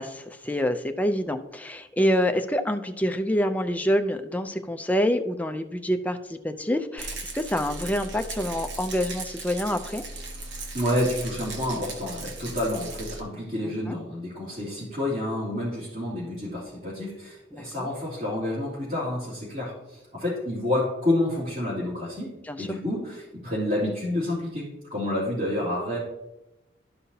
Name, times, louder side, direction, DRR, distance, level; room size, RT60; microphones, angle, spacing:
voice 1, 0.0-10.0 13.6-14.0 17.5-17.9 22.5-22.7, equal, 10° left, 7 dB, 0.5 m, -27 dB
Rattle, 7.0-13.2, right 2 dB, 70° right, 1.3 m, -37 dB
voice 2, 10.7-26.0, left 1 dB, 45° right, -11 dB, 3.0 m, -29 dB
12.5 x 5.5 x 2.8 m, 0.93 s
head